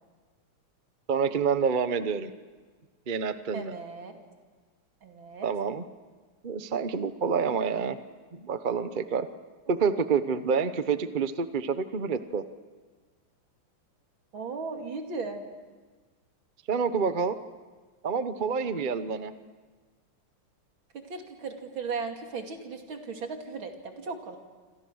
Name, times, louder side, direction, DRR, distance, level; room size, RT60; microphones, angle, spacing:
voice 1, 1.1-2.3 3.1-3.7 5.4-5.8 6.4-8.0 8.3-9.3 9.7-12.4 16.7-17.4 18.0-19.3, right 5 dB, 40° right, 10 dB, 0.7 m, -28 dB
voice 2, 3.5-4.2 5.0-5.5 14.3-15.4 20.9-24.4, right 4 dB, 65° right, 3 dB, 3.3 m, -37 dB
28.0 x 26.5 x 6.4 m, 1.4 s
omnidirectional pair, 2.4 m